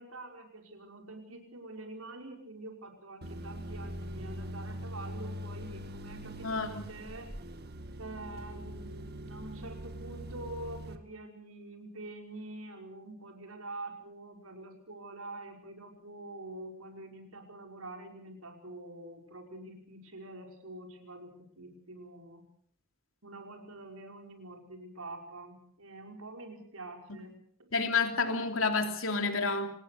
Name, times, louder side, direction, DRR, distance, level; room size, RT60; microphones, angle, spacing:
voice 1, 0.0-7.3 8.0-22.4 23.2-27.3 27.6-27.7, right 2 dB, 85° right, 4 dB, 5.3 m, -46 dB
sound 1, 3.2-11.0, equal, 50° right, 1.9 m, -42 dB
voice 2, 27.7-29.7, left 4 dB, 65° left, 6 dB, 3.1 m, -29 dB
26.5 x 19.0 x 6.7 m, 0.63 s
head